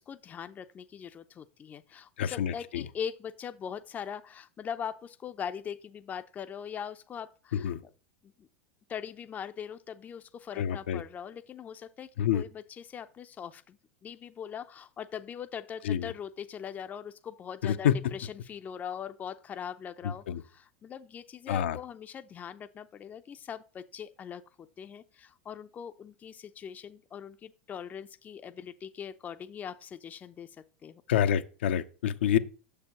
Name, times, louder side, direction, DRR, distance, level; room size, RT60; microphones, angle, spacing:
voice 1, 0.0-7.7 8.2-8.5 8.9-31.0, left 8 dB, 25° left, 0.5 m, -41 dB
voice 2, 2.2-2.9 7.5-7.8 10.5-11.0 12.2-12.4 15.8-16.1 17.6-18.0 20.3-20.4 21.5-21.8 31.1-32.4, left 9 dB, 75° left, 0.5 m, -27 dB
6.8 x 6.6 x 2.9 m
hypercardioid pair, 95°, 6 cm